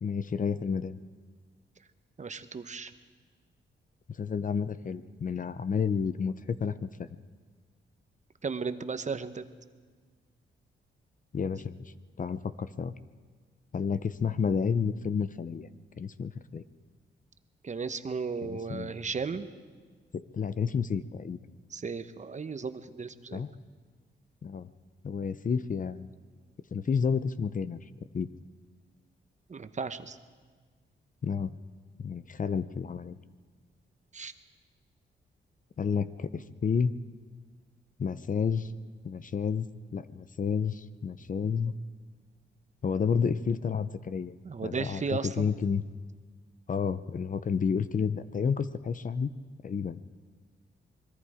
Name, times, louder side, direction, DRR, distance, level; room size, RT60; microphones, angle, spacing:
voice 1, 0.0-1.0 4.2-7.1 11.3-12.9 13.7-15.7 16.0-16.6 18.4-18.9 20.1-21.4 23.3-23.5 24.4-24.7 25.0-26.1 26.7-27.8 28.1-28.3 31.2-31.5 32.0-33.2 35.8-36.9 38.0-38.7 39.0-41.7 42.8-44.3 44.6-45.8 46.7-49.3 49.6-50.0, left 6 dB, 40° left, 14 dB, 0.7 m, -30 dB
voice 2, 2.2-2.9 8.4-9.4 17.6-19.5 21.7-23.4 29.5-30.2 34.1-34.3 44.4-45.5, right 5 dB, 35° right, 11 dB, 1.0 m, -35 dB
25.5 x 21.5 x 5.0 m, 1.5 s
cardioid pair, 95°, 20 cm